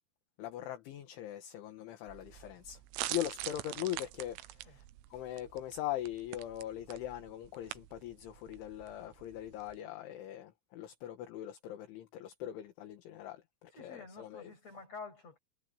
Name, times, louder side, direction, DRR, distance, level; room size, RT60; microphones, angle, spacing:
voice 1, 0.4-2.8 3.1-4.8 5.1-14.5, left 12 dB, 70° left, 3.9 m, -41 dB
sound 1, 2.1-9.8, right 16 dB, 90° right, 3.6 m, -45 dB
voice 2, 13.7-15.4, left 4 dB, 30° left, 9.0 m, -49 dB
omnidirectional pair, 5.9 m